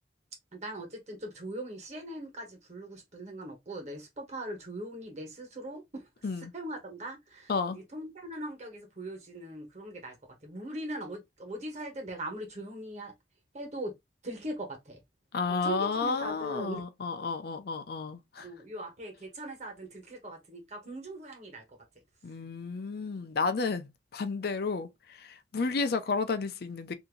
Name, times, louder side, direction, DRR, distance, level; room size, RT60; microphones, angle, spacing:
voice 1, 0.5-6.1 6.5-13.1 13.5-13.9 14.2-15.0 15.6-16.8 18.4-21.6 25.6-25.7, right 1 dB, 40° right, 1.3 m, -40 dB
voice 2, 7.5-7.8 15.3-18.5 22.2-26.9, left 4 dB, 60° left, 0.5 m, -32 dB
2.8 x 2.6 x 3.8 m
head